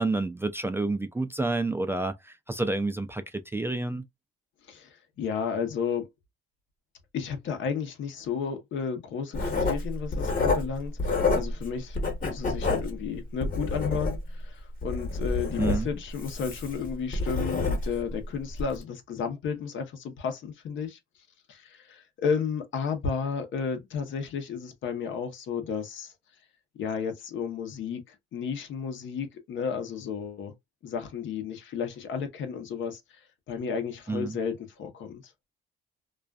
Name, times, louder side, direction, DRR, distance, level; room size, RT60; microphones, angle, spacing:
voice 1, 0.0-4.0 15.6-15.9 34.1-34.4, right 2 dB, 10° right, 0.3 m, -29 dB
voice 2, 4.7-6.1 7.1-21.0 21.5-26.1 26.8-30.5 30.8-35.3, left 6 dB, 75° left, 0.8 m, -33 dB
Writing, 9.3-11.7 11.9-14.4 14.8-18.1 18.5-18.7, left 3 dB, 45° left, 1.1 m, -28 dB
2.4 x 2.2 x 2.3 m
cardioid pair, 90°, 20 cm